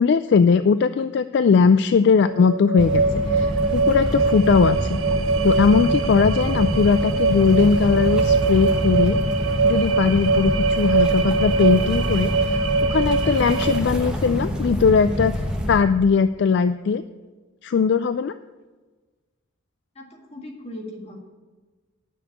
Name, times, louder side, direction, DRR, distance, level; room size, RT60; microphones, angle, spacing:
voice 1, 0.0-5.0 5.4-9.2 9.6-12.6 12.9-15.3 15.7-17.0 17.6-18.3, left 5 dB, 55° left, 12 dB, 0.3 m, -19 dB
sound 1, 2.3-13.8, right 4 dB, 85° right, 0.7 m, -23 dB
sound 2, 2.8-15.8, equal, 5° right, 1.0 m, -26 dB
voice 2, 19.9-21.2, left 1 dB, 30° left, 1 dB, 1.8 m, -38 dB
10.0 x 6.2 x 8.6 m, 1.3 s
head